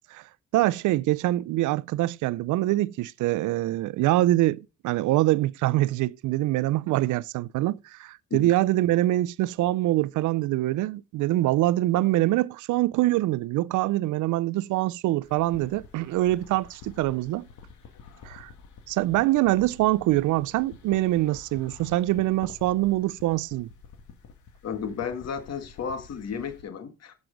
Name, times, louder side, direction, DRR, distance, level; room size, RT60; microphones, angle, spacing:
voice 1, 0.5-17.5 18.2-18.5 18.9-23.7, right 16 dB, 80° right, 0.5 m, -24 dB
sound 1, 15.2-26.6, left 6 dB, 75° left, 2.0 m, -49 dB
voice 2, 24.6-27.1, left 6 dB, 55° left, 1.8 m, -33 dB
7.9 x 6.2 x 5.1 m
cardioid pair, 90°, 30 cm